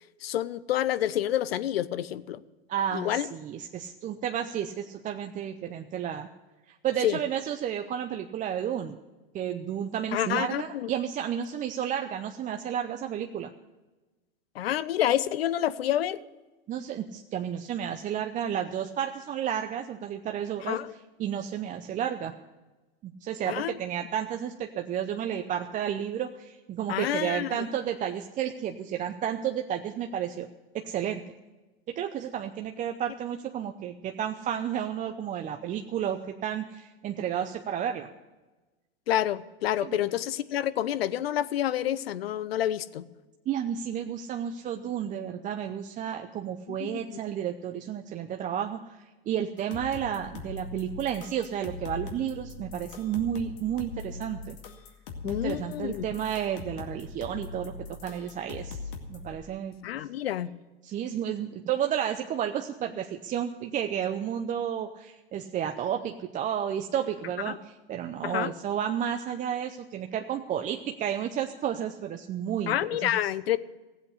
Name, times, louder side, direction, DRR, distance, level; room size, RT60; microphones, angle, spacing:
voice 1, 0.2-2.4 2.9-3.3 7.0-7.2 10.1-10.9 14.5-16.2 20.6-20.9 23.5-23.8 26.9-27.6 39.1-43.0 46.7-47.2 55.2-56.1 59.8-60.5 67.5-67.6 68.2-68.5 72.7-73.6, left 12 dB, 80° left, 17 dB, 0.7 m, -28 dB
voice 2, 2.7-6.3 6.7-9.0 9.3-13.5 16.7-20.8 21.2-22.3 23.2-30.5 30.7-31.2 31.9-38.1 39.8-40.0 43.5-54.6 55.2-57.7 58.0-58.8 59.1-59.7 60.8-72.7 73.0-73.1, right 9 dB, 25° right, 5 dB, 0.6 m, -32 dB
sound 1, 49.6-59.3, left 4 dB, 65° left, 2.2 m, -41 dB
15.5 x 8.0 x 8.1 m, 1.1 s
hypercardioid pair, 110°, 30 cm